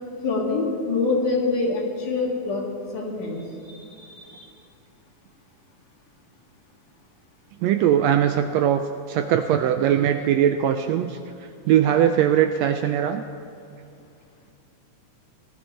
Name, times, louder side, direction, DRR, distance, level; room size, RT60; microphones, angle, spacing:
voice 1, 0.2-2.7 2.9-3.5 3.7-4.5, left 3 dB, 90° left, -3 dB, 3.9 m, -25 dB
voice 2, 7.6-13.2, right 10 dB, 80° right, 8 dB, 1.5 m, -21 dB
18.0 x 12.5 x 4.5 m, 2.6 s
omnidirectional pair, 3.5 m